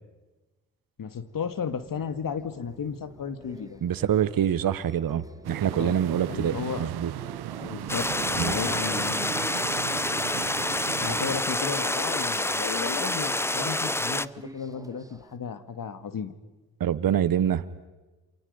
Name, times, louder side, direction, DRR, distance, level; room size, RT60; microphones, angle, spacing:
voice 1, 1.0-3.8 5.7-6.0 6.3-6.9 7.6-9.3 10.9-16.3, left 6 dB, 55° left, 11 dB, 2.0 m, -34 dB
sound 1, 1.2-15.4, right 1 dB, 10° right, 1.5 m, -45 dB
voice 2, 3.8-7.1 8.4-8.6 16.8-17.6, right 9 dB, 60° right, 14 dB, 1.2 m, -25 dB
sound 2, 5.4-11.4, right 14 dB, 75° right, 0.9 m, -37 dB
sound 3, 7.9-14.3, left 1 dB, 5° left, 0.7 m, -28 dB
28.5 x 26.0 x 5.3 m, 1.2 s
hypercardioid pair, 45°, 39 cm